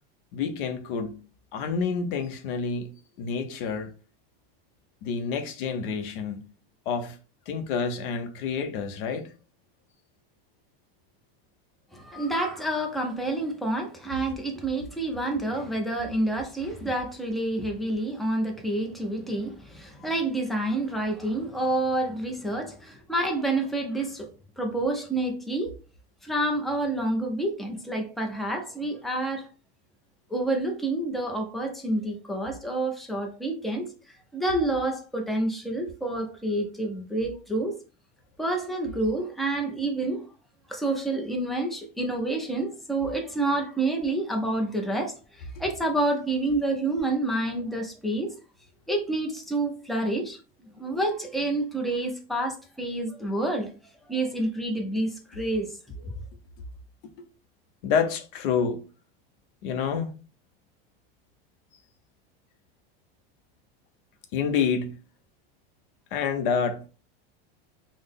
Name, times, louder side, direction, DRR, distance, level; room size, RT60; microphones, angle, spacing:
voice 1, 0.3-1.2 1.5-2.9 3.2-3.9 5.0-6.5 6.9-7.2 7.5-9.3 57.2-57.3 57.8-58.8 59.6-60.1 64.3-65.0 66.1-66.8, left 6 dB, 60° left, 0.6 m, -28 dB
voice 2, 11.9-24.3 24.6-25.7 26.2-29.5 30.3-33.9 34.3-37.8 38.4-40.2 40.7-48.3 48.9-50.4 50.8-53.7 54.1-55.7 56.0-56.1, right 2 dB, ahead, 0.4 m, -28 dB
3.7 x 2.0 x 3.6 m
supercardioid pair, 155°, 30 cm